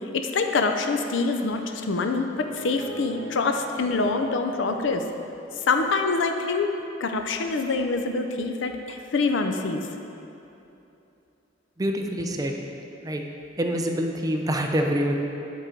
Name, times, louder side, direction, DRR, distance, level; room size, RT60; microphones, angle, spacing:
voice 1, 0.1-5.0 5.6-6.7 7.0-9.8, left 3 dB, 85° left, 6 dB, 0.5 m, -25 dB
sound 1, 2.4-4.3 4.6-6.2 6.7-6.9, left 1 dB, 75° right, 1.1 m, -43 dB
voice 2, 11.8-12.5 13.0-13.2 13.6-15.2, equal, 20° right, 3 dB, 0.5 m, -25 dB
10.5 x 3.8 x 4.5 m, 2.8 s
head